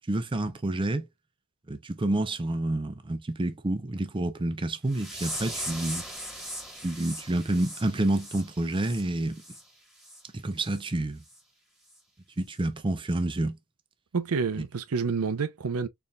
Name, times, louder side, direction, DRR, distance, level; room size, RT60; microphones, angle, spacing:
voice 1, 0.1-1.0 1.7-6.0 6.8-9.4 10.4-11.2 12.4-13.6, right 1 dB, 20° right, 0.5 m, -28 dB
sound 1, 4.9-9.6 10.0-10.2 10.6-10.8 11.3-11.4 11.9-12.0, equal, ahead, 1.7 m, -39 dB
voice 2, 14.1-15.9, right 5 dB, 85° right, 0.6 m, -28 dB
4.1 x 3.3 x 2.3 m
head